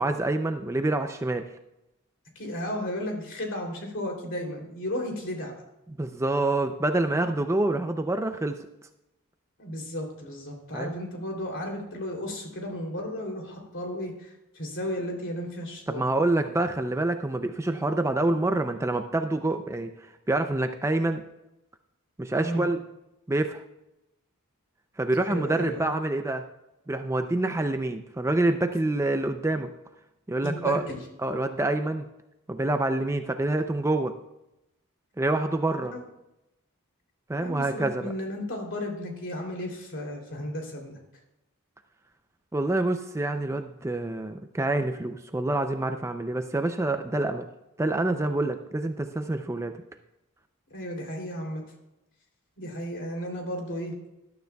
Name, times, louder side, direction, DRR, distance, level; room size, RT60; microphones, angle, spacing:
voice 1, 0.0-1.5 6.0-8.6 10.7-10.9 15.9-21.2 22.2-22.8 23.3-23.6 25.0-26.4 26.9-29.7 30.3-30.8 31.2-32.1 32.5-34.1 35.2-35.9 37.3-38.1 42.5-47.4 47.8-49.8, right 2 dB, 10° right, 7 dB, 0.4 m, -27 dB
voice 2, 2.3-5.6 9.6-16.1 22.4-22.6 25.2-25.9 30.4-31.0 35.9-36.0 37.4-41.0 50.7-51.6 52.6-53.9, left 1 dB, 55° left, 0 dB, 3.0 m, -34 dB
19.5 x 12.0 x 2.3 m, 0.90 s
head